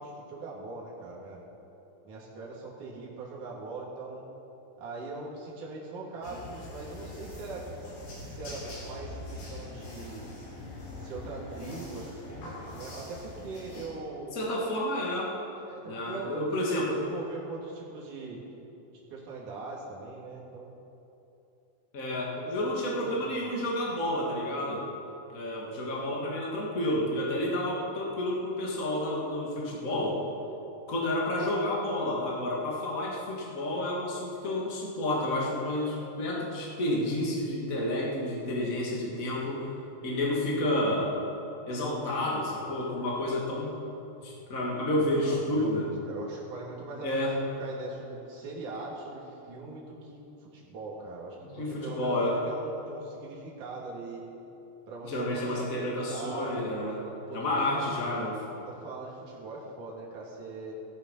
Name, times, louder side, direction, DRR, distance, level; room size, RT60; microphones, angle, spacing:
voice 1, 0.0-1.4 2.0-4.3 4.8-10.2 10.9-14.4 15.6-18.5 18.9-20.7 22.4-23.5 45.2-47.3 47.6-54.3 54.9-57.9 58.7-60.7, right 3 dB, 55° right, -5 dB, 3.9 m, -41 dB
sound 1, 6.2-13.9, left 2 dB, 80° left, 5.9 m, -43 dB
voice 2, 14.3-15.3 15.8-17.0 21.9-24.8 25.3-30.2 30.9-39.7 40.0-41.1 41.7-43.8 44.2-45.9 47.0-47.4 51.4-52.4 55.0-57.0 57.3-58.6, left 1 dB, 25° left, -4 dB, 2.4 m, -30 dB
16.5 x 13.5 x 5.7 m, 2.9 s
omnidirectional pair, 4.4 m